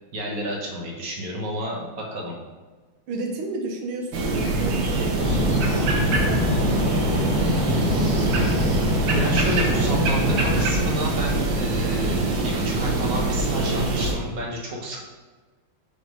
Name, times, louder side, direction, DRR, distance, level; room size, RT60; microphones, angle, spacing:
voice 1, 0.1-2.4 9.1-15.0, equal, 50° right, -2 dB, 1.2 m, -31 dB
voice 2, 3.1-5.4 6.0-8.4, right 2 dB, 90° right, 1 dB, 1.8 m, -33 dB
sound 1, 4.1-14.1, right 2 dB, 70° right, 1.5 m, -24 dB
sound 2, 5.2-10.6, left 1 dB, 30° left, 1.4 m, -25 dB
5.2 x 3.6 x 5.3 m, 1.4 s
omnidirectional pair, 2.3 m